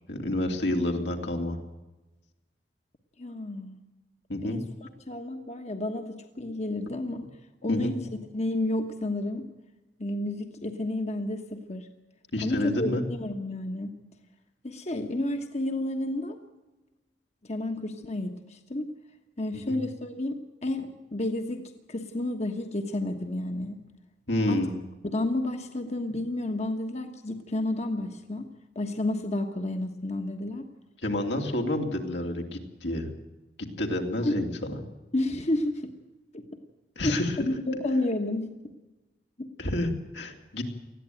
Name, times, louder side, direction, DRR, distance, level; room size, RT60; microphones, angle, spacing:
voice 1, 0.1-1.6 4.3-4.6 7.7-8.0 12.3-13.0 19.5-19.8 24.3-24.8 31.0-33.1 33.8-34.8 37.0-37.5 39.6-40.6, left 1 dB, 80° left, 3 dB, 2.9 m, -29 dB
voice 2, 3.2-3.8 4.4-4.6 5.1-7.3 7.6-8.0 8.3-9.5 10.0-11.9 12.4-13.9 14.6-16.4 17.5-18.9 19.4-21.6 21.9-23.8 24.5-24.6 25.0-28.5 28.7-30.7 34.2-34.3 35.1-35.9 36.3-36.6 37.0-37.2 37.5-38.5 39.4-39.5, left 1 dB, 40° left, 5 dB, 1.3 m, -31 dB
20.0 x 14.0 x 9.2 m, 1.1 s
head